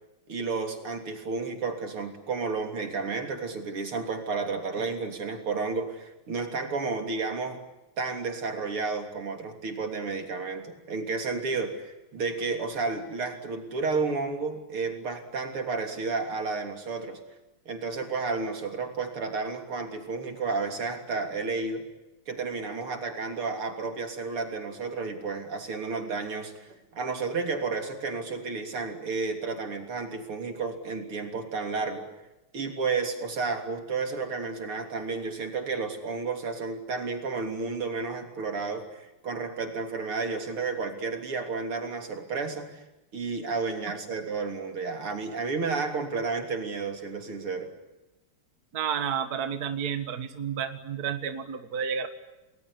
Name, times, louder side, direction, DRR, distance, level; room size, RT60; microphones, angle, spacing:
voice 1, 0.3-7.6 8.0-17.2 17.7-21.9 22.3-32.1 32.5-42.8 43.1-47.7, right 4 dB, 85° right, 5 dB, 4.1 m, -32 dB
voice 2, 48.7-52.1, right 7 dB, 45° right, 9 dB, 2.0 m, -31 dB
30.0 x 20.5 x 9.9 m, 1.0 s
omnidirectional pair, 2.4 m